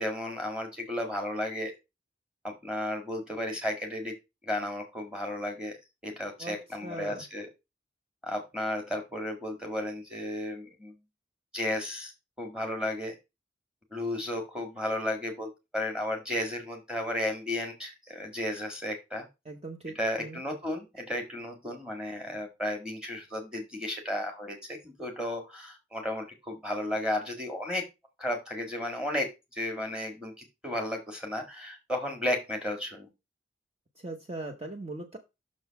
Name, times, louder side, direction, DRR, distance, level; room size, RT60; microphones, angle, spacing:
voice 1, 0.0-1.7 2.4-4.1 4.4-5.8 6.0-7.5 8.2-11.0 11.5-12.1 12.4-13.2 13.9-19.3 19.9-27.8 28.2-30.3 30.6-33.1, left 1 dB, 5° right, 3 dB, 1.7 m, -33 dB
voice 2, 6.8-7.2 19.4-20.4 34.0-35.2, right 2 dB, 30° right, 4 dB, 0.8 m, -39 dB
6.4 x 3.8 x 5.7 m, 0.24 s
head